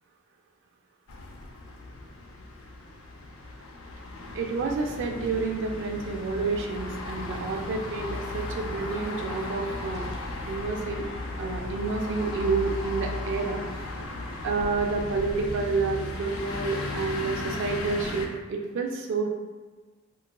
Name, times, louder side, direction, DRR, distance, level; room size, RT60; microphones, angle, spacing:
sound 1, 1.1-18.3, left 2 dB, 80° left, 0.4 m, -36 dB
voice 1, 4.3-10.1 10.5-11.0 11.4-13.6 14.4-19.3, right 4 dB, 60° right, 2 dB, 0.3 m, -29 dB
3.8 x 2.3 x 2.2 m, 1.4 s
head